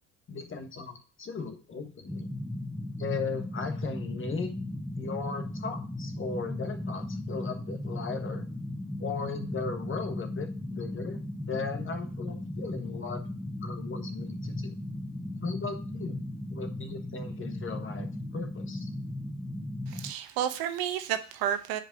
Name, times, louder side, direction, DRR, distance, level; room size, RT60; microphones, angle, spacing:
voice 1, 0.3-2.3 3.0-4.5 5.0-8.5 9.0-13.2 13.6-14.7 15.4-16.2 16.5-18.9, left 4 dB, 30° left, 6 dB, 1.5 m, -37 dB
sound 1, 2.1-20.1, left 1 dB, ahead, 0.5 m, -36 dB
voice 2, 19.9-21.8, right 10 dB, 65° right, 9 dB, 1.0 m, -31 dB
5.2 x 4.8 x 5.9 m, 0.39 s
supercardioid pair, 80°, 39 cm